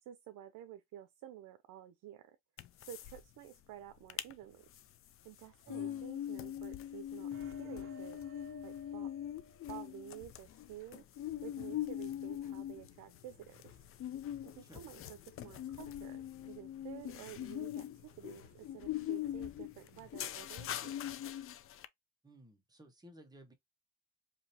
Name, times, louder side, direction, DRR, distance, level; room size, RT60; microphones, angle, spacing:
voice 1, 0.0-2.4 2.8-4.7 5.2-8.2 8.6-9.1 9.7-13.8 14.4-20.9, right 11 dB, 75° right, 0.7 m, -51 dB
sound 1, 2.6-3.2 3.5-3.6 3.9-4.3 4.7-21.9, left 11 dB, 45° left, 0.5 m, -42 dB
voice 2, 5.7-6.1 14.7-14.8 22.2-23.5, equal, 10° right, 1.3 m, -56 dB
sound 2, 7.3-10.0, right 3 dB, 45° right, 1.0 m, -55 dB
sound 3, 11.2-20.2, left 7 dB, 80° left, 1.0 m, -61 dB
5.0 x 2.9 x 2.8 m
cardioid pair, 145°, 31 cm